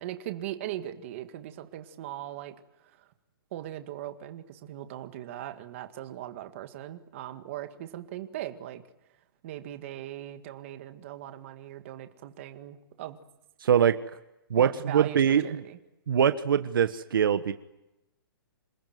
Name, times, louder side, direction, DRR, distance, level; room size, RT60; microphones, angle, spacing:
voice 1, 0.0-2.5 3.0-3.1 3.5-8.8 9.4-13.2 14.6-15.8, right 12 dB, 35° right, 8 dB, 1.9 m, -39 dB
voice 2, 13.6-14.0 14.5-15.6 16.1-17.5, right 8 dB, 65° right, 10 dB, 1.4 m, -23 dB
27.5 x 20.0 x 9.5 m, 0.92 s
hypercardioid pair, 170°, 12 cm